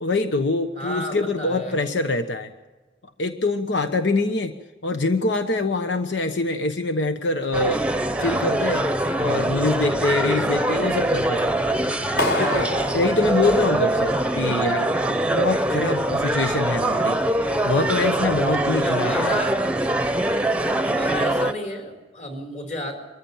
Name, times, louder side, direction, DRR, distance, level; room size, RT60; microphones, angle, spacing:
voice 1, 0.0-2.5 3.2-4.5 4.8-7.8 8.2-8.9 9.2-11.5 12.1-14.9 15.3-19.3, left 2 dB, 90° left, 7 dB, 1.1 m, -24 dB
voice 2, 0.7-1.8 18.8-19.7 20.8-23.0, equal, 40° left, 5 dB, 4.5 m, -32 dB
sound 1, 7.5-21.5, right 1 dB, 5° right, 0.8 m, -23 dB
Clapping, 12.2-14.2, left 1 dB, 60° left, 4.1 m, -28 dB
24.0 x 15.0 x 8.9 m, 1.2 s
head